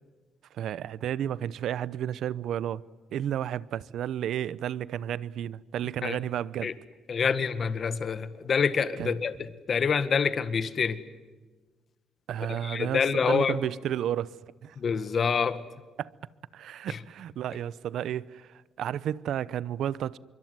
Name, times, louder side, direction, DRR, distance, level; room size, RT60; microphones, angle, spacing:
voice 1, 0.5-2.8 3.1-6.7 9.0-9.1 12.3-14.4 14.6-14.8 16.0-16.1 16.5-20.2, right 10 dB, 75° right, 0.8 m, -32 dB
voice 2, 7.1-11.0 12.5-13.6 14.8-15.6 16.9-17.0, left 6 dB, 50° left, 1.7 m, -27 dB
26.0 x 24.0 x 9.6 m
cardioid pair, 90°, 0 cm